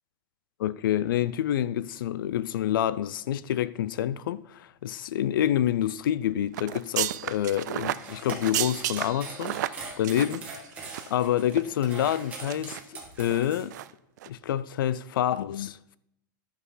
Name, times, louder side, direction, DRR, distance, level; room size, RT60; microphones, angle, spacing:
voice 1, 0.6-10.5 11.1-13.8 14.3-16.0, left 11 dB, 80° left, 0.4 m, -28 dB
sound 1, 6.5-11.2 11.5-11.6 12.1-12.8 13.2-13.4 13.7-13.9 14.2-14.3, right 14 dB, 55° right, 0.4 m, -33 dB
sound 2, 7.9-13.6, right 4 dB, 10° right, 1.4 m, -41 dB
11.0 x 5.7 x 3.9 m
supercardioid pair, 170°, 11 cm